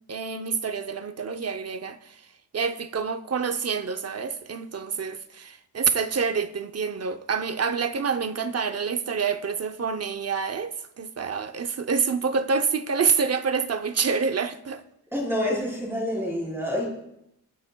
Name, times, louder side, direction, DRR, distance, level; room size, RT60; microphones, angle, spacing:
voice 1, 0.1-2.2 2.5-14.8, right 5 dB, 40° right, 0.6 m, -27 dB
voice 2, 15.1-16.8, left 1 dB, 5° right, 3.8 m, -27 dB
25.0 x 9.9 x 2.2 m
wide cardioid pair, 175°, 39 cm